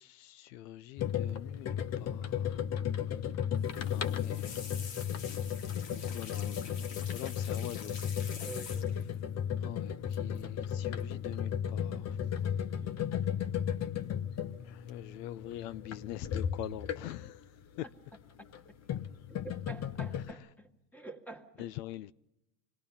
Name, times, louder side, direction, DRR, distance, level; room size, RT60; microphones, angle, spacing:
voice 1, 0.0-2.6 3.9-4.6 5.9-8.0 9.6-12.3 14.6-17.5 17.8-17.9 21.6-22.1, left 14 dB, 75° left, 0.7 m, -44 dB
sound 1, 1.0-17.4 18.4-20.3, left 9 dB, 30° left, 0.9 m, -35 dB
sound 2, 3.6-9.1 10.1-10.4 10.7-11.0 12.2-12.8 13.1-13.7 14.1-14.5 14.9-15.0, left 6 dB, 60° left, 2.3 m, -47 dB
voice 2, 8.4-9.0 12.4-13.1 18.4-18.5 19.4-21.7, right 3 dB, 5° left, 1.9 m, -48 dB
25.5 x 19.5 x 5.7 m
supercardioid pair, 115°, 49 cm